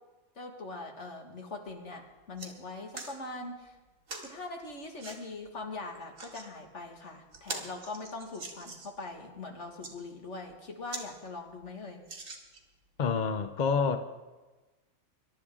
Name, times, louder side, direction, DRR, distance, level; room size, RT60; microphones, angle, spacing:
voice 1, 0.4-3.8 4.2-12.0, left 3 dB, 60° left, 2 dB, 2.0 m, -42 dB
sound 1, 1.7-1.8 2.1-2.5 2.9-3.2 4.1-4.3 5.0-5.2 6.0-6.5 6.9-7.0 7.3-9.0 9.6-9.9 10.5-10.6 10.9-11.1 11.4-11.5 12.0-12.8 13.4-13.5, right 3 dB, 90° right, 2.5 m, -42 dB
voice 2, 13.0-14.0, left 5 dB, 45° left, 8 dB, 0.7 m, -28 dB
23.0 x 11.5 x 3.7 m, 1.2 s
omnidirectional pair, 1.4 m